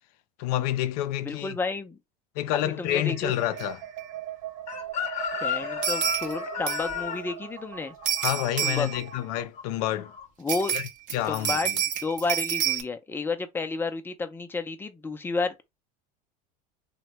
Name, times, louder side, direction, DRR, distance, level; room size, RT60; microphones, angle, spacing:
voice 1, 0.4-1.6 2.4-3.8 8.2-10.1 10.7-11.8, left 13 dB, 75° left, 0.5 m, -28 dB
voice 2, 1.2-2.0 2.5-3.3 5.4-7.9 8.6-8.9 10.4-10.8 11.3-11.7 12.0-15.5, left 3 dB, 10° left, 0.4 m, -31 dB
sound 1, 3.0-9.4, right 11 dB, 85° right, 0.8 m, -40 dB
sound 2, 3.6-3.7 4.0-4.1 5.8-6.3 6.7-7.0 8.1-9.0 10.5-12.8, right 9 dB, 40° right, 0.7 m, -28 dB
Chicken rooster, 4.7-9.6 9.9-10.2, left 7 dB, 35° left, 0.8 m, -33 dB
3.1 x 2.2 x 2.9 m
supercardioid pair, 115°, 20 cm